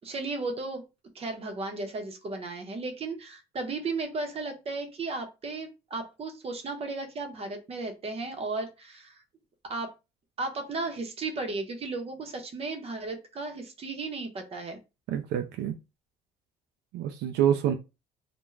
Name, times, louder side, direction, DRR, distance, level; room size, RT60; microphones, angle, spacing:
voice 1, 0.0-0.8 1.1-9.2 9.7-9.9 10.4-14.8, right 3 dB, 35° right, 0.7 m, -35 dB
voice 2, 15.1-15.7 16.9-17.7, right 10 dB, 80° right, 0.4 m, -26 dB
2.4 x 2.1 x 3.0 m
cardioid pair, 110°, 17 cm